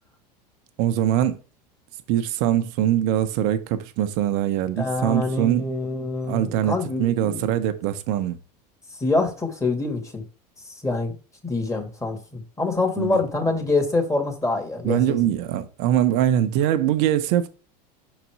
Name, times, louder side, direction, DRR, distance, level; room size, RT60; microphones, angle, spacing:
voice 1, 0.8-1.4 2.1-5.7 6.3-8.4 13.0-13.2 14.8-17.5, right 11 dB, 60° right, 1.0 m, -22 dB
voice 2, 4.8-7.5 9.0-10.2 10.8-11.1 11.4-15.2, left 3 dB, 15° left, 2.3 m, -25 dB
5.9 x 4.1 x 4.7 m
hypercardioid pair, 85°, 21 cm